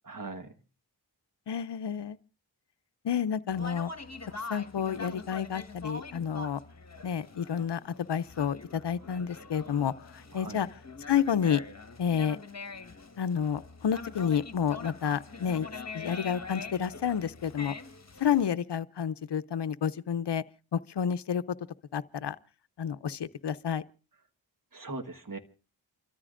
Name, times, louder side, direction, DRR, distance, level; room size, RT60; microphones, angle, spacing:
voice 1, 0.1-0.5 10.3-10.6 24.7-25.4, right 3 dB, 45° right, 1.5 m, -40 dB
voice 2, 1.5-2.2 3.0-3.9 4.5-6.6 7.0-7.8 8.1-10.7 11.1-11.6 12.0-12.4 13.2-15.7 15.9-17.7 18.2-20.4 20.7-21.4 21.9-22.4 22.8-23.8, left 8 dB, 65° left, 0.7 m, -30 dB
Conversation, 3.5-18.5, left 3 dB, 35° left, 1.4 m, -44 dB
29.0 x 13.5 x 2.5 m
cardioid pair, 50°, 45 cm